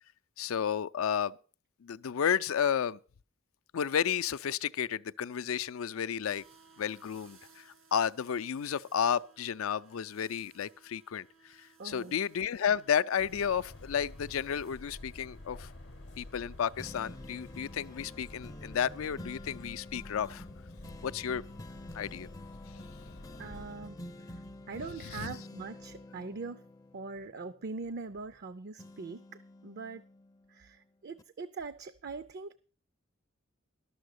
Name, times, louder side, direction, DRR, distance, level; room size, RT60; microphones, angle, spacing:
voice 1, 0.4-1.4 1.8-3.0 3.7-6.4 6.8-15.7 16.2-20.4 21.0-21.4 21.9-22.3 25.1-25.4, left 8 dB, 80° left, 0.4 m, -32 dB
sound 1, 6.2-19.3, right 5 dB, 80° right, 2.0 m, -62 dB
voice 2, 11.8-12.2 23.4-26.7 26.9-30.1 30.5-32.5, right 4 dB, 50° right, 0.5 m, -42 dB
sound 2, 13.2-23.7, left 2 dB, 60° left, 0.8 m, -50 dB
sound 3, 16.8-28.4 28.8-30.7 31.2-31.3, left 1 dB, 15° left, 0.4 m, -49 dB
12.0 x 7.1 x 6.5 m
head